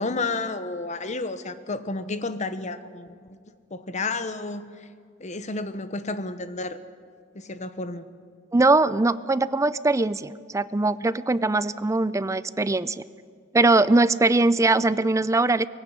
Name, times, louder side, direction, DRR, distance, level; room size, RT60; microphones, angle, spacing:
voice 1, 0.0-3.4 3.7-4.9 5.2-6.8 7.3-8.1, left 3 dB, 35° left, 11 dB, 1.0 m, -31 dB
voice 2, 8.5-13.0 13.5-15.6, right 2 dB, 15° right, 16 dB, 0.5 m, -21 dB
20.0 x 16.0 x 9.6 m, 2.1 s
head